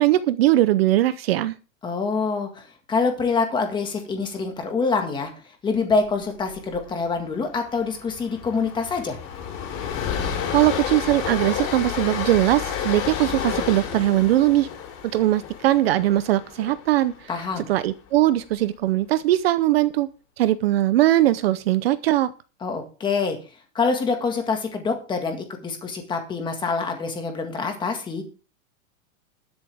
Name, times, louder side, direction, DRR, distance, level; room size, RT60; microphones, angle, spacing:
voice 1, 0.0-1.5 10.5-14.7 15.1-17.3 17.6-20.1 20.4-22.3, right 14 dB, 50° right, 14 dB, 0.6 m, -20 dB
voice 2, 1.8-5.3 5.6-9.2 17.3-17.7 22.6-23.4 23.8-28.2, left 4 dB, 10° left, 5 dB, 1.8 m, -25 dB
Train, 6.5-6.8 7.0-7.2 7.6-17.7, left 8 dB, 30° left, 3.6 m, -31 dB
20.5 x 7.2 x 3.5 m, 0.35 s
supercardioid pair, 170°, 40 cm